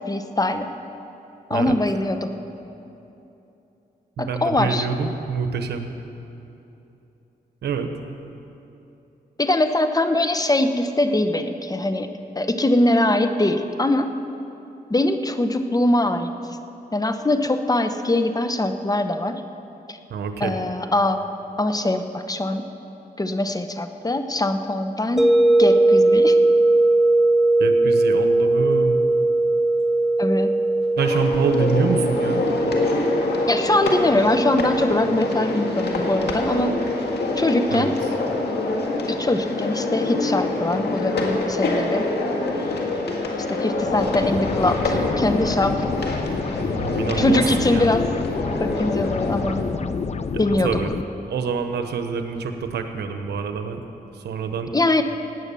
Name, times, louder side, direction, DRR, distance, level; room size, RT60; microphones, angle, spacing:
voice 1, 0.1-0.7 1.5-2.3 4.2-4.9 9.4-12.1 12.4-14.1 14.9-16.3 16.9-19.4 19.9-20.0 20.4-21.2 21.6-22.6 23.2-25.3 25.6-26.4 30.2-30.5 33.5-36.7 37.4-37.9 39.1-42.1 43.5-45.7 47.2-48.0 48.6-49.6 50.4-50.8 54.7-55.0, left 1 dB, 20° left, 8 dB, 1.0 m, -22 dB
voice 2, 4.2-5.9 7.6-7.9 20.1-20.6 27.6-29.0 31.0-32.4 37.7-37.9 46.5-47.9 50.6-50.9 51.3-53.8 54.1-54.7, right 5 dB, 90° right, 7 dB, 1.1 m, -26 dB
sound 1, 25.2-40.1, right 2 dB, ahead, 1.0 m, -21 dB
sound 2, 31.0-49.6, left 2 dB, 80° left, 1.9 m, -26 dB
sound 3, 43.8-51.0, left 5 dB, 40° left, 0.6 m, -28 dB
17.5 x 9.0 x 7.0 m, 2.9 s
cardioid pair, 70°, 17 cm